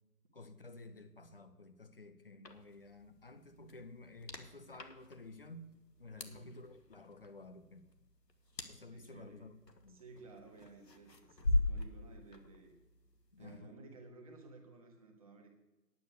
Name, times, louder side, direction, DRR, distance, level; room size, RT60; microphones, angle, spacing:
voice 1, 0.3-5.7 6.0-7.9 8.6-9.6 9.8-10.0 13.3-13.7, left 2 dB, 35° left, 9 dB, 0.8 m, -53 dB
sound 1, 2.4-13.6, left 2 dB, 80° left, 1.5 m, -42 dB
voice 2, 6.2-6.6 8.9-9.5 9.9-12.7 13.4-15.6, right 3 dB, 20° right, 2 dB, 1.3 m, -56 dB
9.5 x 8.8 x 6.5 m, 1.1 s
figure-of-eight pair, 150°, 49 cm